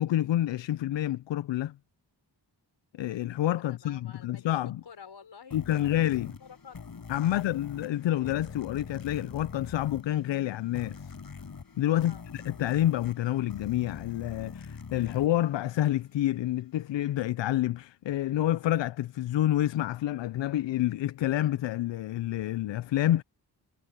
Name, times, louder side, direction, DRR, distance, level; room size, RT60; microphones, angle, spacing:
voice 1, 0.0-1.8 2.9-4.8 5.5-6.3 7.1-11.1 11.8-23.2, left 13 dB, 90° left, 0.5 m, -28 dB
voice 2, 3.6-4.5 4.8-6.1 6.4-6.8 7.2-7.4 11.9-12.2, left 7 dB, 75° left, 6.2 m, -50 dB
sound 1, 5.5-16.3, left 5 dB, 55° left, 5.1 m, -44 dB
wide cardioid pair, 105°, 42 cm